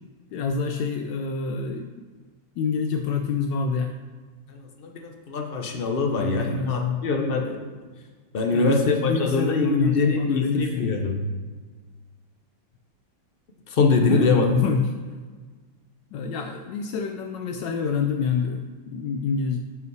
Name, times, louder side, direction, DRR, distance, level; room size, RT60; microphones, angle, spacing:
voice 1, 0.3-1.9 2.6-3.9 6.2-7.4 8.5-10.9 14.0-14.9 16.1-19.6, left 5 dB, 80° left, 5 dB, 1.2 m, -27 dB
voice 2, 4.5-7.6 8.3-11.2 13.7-14.5, left 3 dB, 50° left, 2 dB, 0.7 m, -23 dB
7.7 x 5.4 x 4.7 m, 1.4 s
omnidirectional pair, 2.0 m